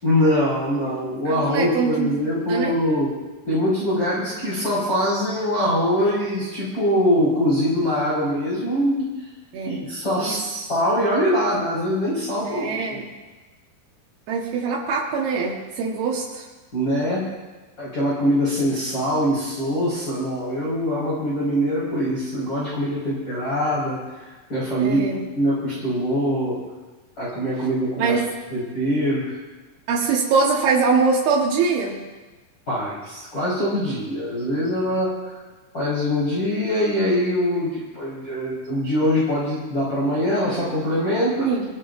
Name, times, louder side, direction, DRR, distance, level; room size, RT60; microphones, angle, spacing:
voice 1, 0.0-3.1 3.5-9.0 9.7-10.4 10.7-12.8 16.7-17.2 17.8-25.1 25.3-26.6 27.2-28.2 28.5-29.4 32.7-35.4 35.7-41.5, equal, 25° left, -9 dB, 5.4 m, -23 dB
voice 2, 1.3-2.8 9.5-9.8 10.2-10.6 12.4-13.0 14.3-16.5 24.8-25.2 28.0-28.3 29.9-32.0 41.5-41.7, right 5 dB, 90° right, -4 dB, 3.4 m, -23 dB
25.0 x 17.5 x 2.7 m, 1.2 s
omnidirectional pair, 4.2 m